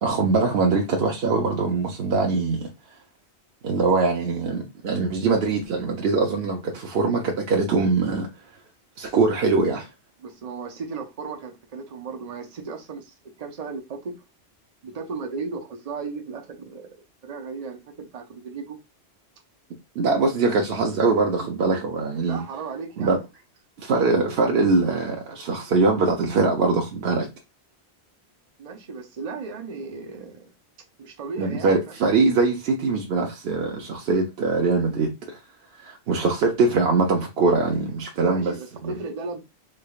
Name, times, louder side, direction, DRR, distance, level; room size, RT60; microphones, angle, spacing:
voice 1, 0.0-2.7 3.6-8.3 9.0-9.9 20.0-22.4 23.0-23.2 23.8-27.3 31.4-35.4 35.8-38.6 38.8-39.0, right 3 dB, 70° right, 0.8 m, -22 dB
voice 2, 10.2-14.1 14.8-16.9 17.2-18.8 22.3-23.2 28.6-30.5 31.0-31.9 38.2-39.4, right 4 dB, 40° right, 0.7 m, -35 dB
3.7 x 3.3 x 2.3 m
omnidirectional pair, 1.1 m